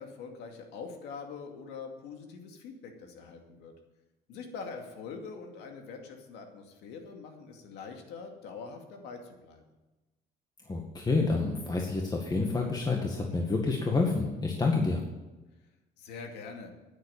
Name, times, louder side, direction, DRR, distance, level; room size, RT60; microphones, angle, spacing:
voice 1, 0.0-3.7 4.3-9.6 16.0-16.7, left 5 dB, 90° left, 4 dB, 2.4 m, -44 dB
voice 2, 10.7-15.0, left 3 dB, 25° left, 0 dB, 1.9 m, -28 dB
10.0 x 9.3 x 8.9 m, 1.1 s
cardioid pair, 110°, 17 cm